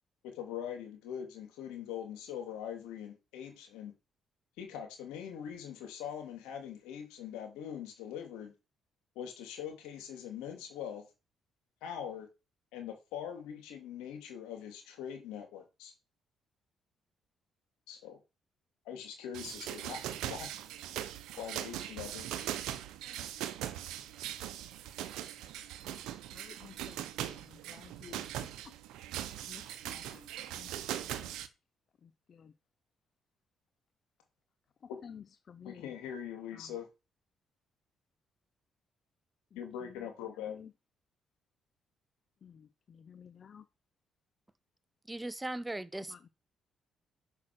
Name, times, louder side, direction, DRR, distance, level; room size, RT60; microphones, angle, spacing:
voice 1, 0.2-3.9 4.6-8.5 9.1-11.1 11.8-12.3 12.7-15.9 17.9-18.2 18.8-20.5 21.4-22.5 34.9-35.0 35.6-36.9 39.5-40.6, left 9 dB, 90° left, 2.6 m, -42 dB
sound 1, 19.3-31.5, right 12 dB, 85° right, 0.8 m, -40 dB
voice 2, 26.3-28.2 29.2-30.3 30.6-30.7 31.0-31.4 32.3-32.5 35.0-35.8 36.6-36.7 40.4-40.7 42.4-43.6 46.1-46.3, left 7 dB, 55° left, 0.5 m, -53 dB
voice 3, 45.0-46.3, right 1 dB, 15° right, 0.9 m, -39 dB
6.3 x 5.9 x 6.2 m
supercardioid pair, 60°, 0 cm